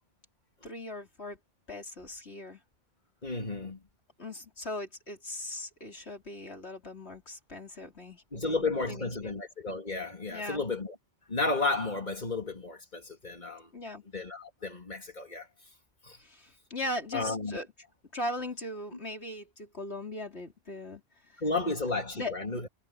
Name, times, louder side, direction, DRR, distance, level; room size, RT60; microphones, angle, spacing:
voice 1, 0.6-1.4 1.7-2.6 4.2-9.4 10.3-10.6 13.7-14.0 16.2-17.6 18.1-21.0 22.1-22.3, left 1 dB, 80° left, 4.4 m, -39 dB
voice 2, 3.2-3.8 8.3-10.9 11.3-13.7 14.1-15.5 16.0-16.2 17.1-17.6 21.4-22.7, left 3 dB, 45° left, 3.3 m, -32 dB
omnidirectional pair, 1.1 m